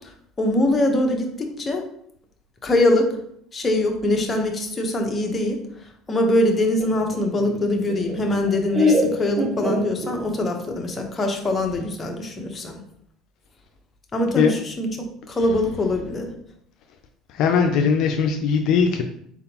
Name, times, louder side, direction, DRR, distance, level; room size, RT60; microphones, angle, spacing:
voice 1, 0.4-1.3 1.6-1.8 2.6-3.1 3.5-5.6 6.1-12.7 14.1-14.9 15.3-16.3, left 1 dB, 25° left, 2 dB, 1.0 m, -22 dB
Laughter, 6.8-10.5, left 1 dB, 30° right, 1.0 m, -24 dB
voice 2, 17.3-19.0, left 6 dB, 65° left, 4 dB, 0.4 m, -19 dB
4.2 x 3.7 x 2.9 m, 0.69 s
supercardioid pair, 90°, 0 cm